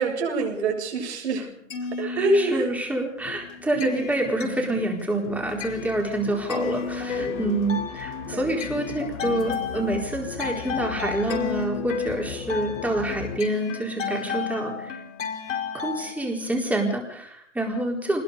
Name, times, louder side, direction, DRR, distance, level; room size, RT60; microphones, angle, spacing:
voice 1, 0.0-1.5 2.0-2.7 3.7-4.1 7.1-7.6 8.3-8.6 13.9-14.2, right 2 dB, 60° right, 2 dB, 7.4 m, -26 dB
sound 1, 1.5-2.9 3.3-16.1, left 6 dB, 70° left, 4.7 m, -33 dB
voice 2, 2.0-15.0 15.7-18.2, right 1 dB, 5° right, 1 dB, 4.4 m, -27 dB
sound 2, 3.2-13.4, left 8 dB, 40° left, 3.0 m, -39 dB
25.5 x 20.0 x 5.1 m, 0.69 s
hypercardioid pair, 135°, 38 cm